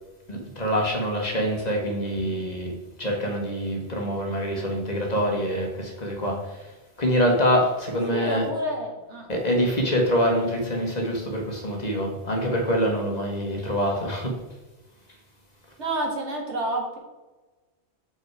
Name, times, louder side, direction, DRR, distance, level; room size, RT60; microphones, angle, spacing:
voice 1, 0.3-6.7 7.0-8.5 9.3-14.4, equal, 40° left, 1 dB, 1.3 m, -25 dB
voice 2, 8.1-9.3 15.8-17.0, right 1 dB, 90° right, 0 dB, 1.9 m, -29 dB
6.5 x 5.3 x 4.6 m, 1.2 s
omnidirectional pair, 1.1 m